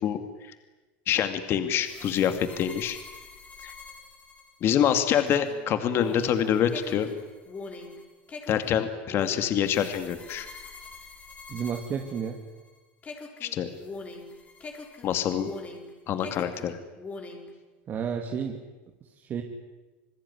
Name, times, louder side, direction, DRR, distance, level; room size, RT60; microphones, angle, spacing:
voice 1, 1.1-3.0 3.6-3.7 4.6-7.1 8.5-10.5 13.4-13.7 15.0-15.5 16.1-16.8, left 9 dB, 45° left, 9 dB, 2.3 m, -26 dB
sound 1, 1.8-12.7 13.0-15.9 16.2-17.5, left 3 dB, 25° left, 4.9 m, -43 dB
voice 2, 11.5-12.4 17.9-18.6 19.0-19.4, right 7 dB, 35° right, 3 dB, 2.7 m, -32 dB
28.0 x 20.5 x 9.9 m, 1.2 s
supercardioid pair, 120°, 6 cm